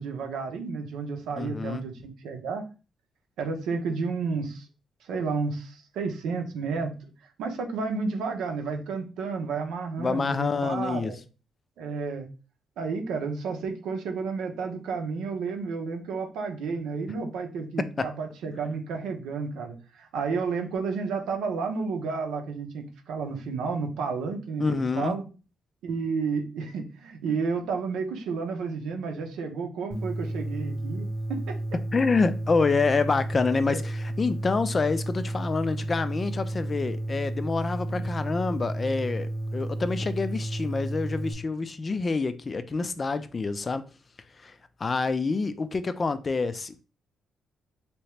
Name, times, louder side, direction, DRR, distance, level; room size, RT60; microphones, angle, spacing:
voice 1, 0.0-2.6 3.4-4.7 5.0-7.1 7.4-11.2 11.8-12.3 12.8-25.2 25.8-31.6 33.6-33.8 38.0-38.1, right 4 dB, 85° right, 0.7 m, -31 dB
voice 2, 1.4-1.8 10.0-11.1 17.8-18.1 24.6-25.2 31.9-43.9 44.4-44.5 44.8-46.8, left 4 dB, 35° left, 0.3 m, -27 dB
sound 1, 29.9-41.3, right 1 dB, ahead, 0.7 m, -32 dB
3.3 x 2.8 x 3.1 m
cardioid pair, 100°, 0 cm